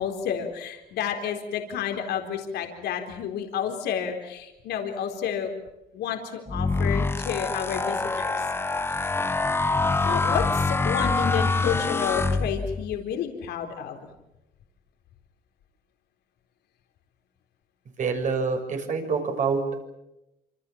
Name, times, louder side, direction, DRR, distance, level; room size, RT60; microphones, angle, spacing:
voice 1, 0.0-5.5 5.9-8.5 10.0-14.1, left 8 dB, 75° left, 3 dB, 4.0 m, -30 dB
sound 1, 6.5-12.9, left 3 dB, 15° left, 1.1 m, -25 dB
voice 2, 18.0-19.6, right 5 dB, 45° right, 5 dB, 6.6 m, -26 dB
27.5 x 26.5 x 7.3 m, 0.92 s
cardioid pair, 110°, 17 cm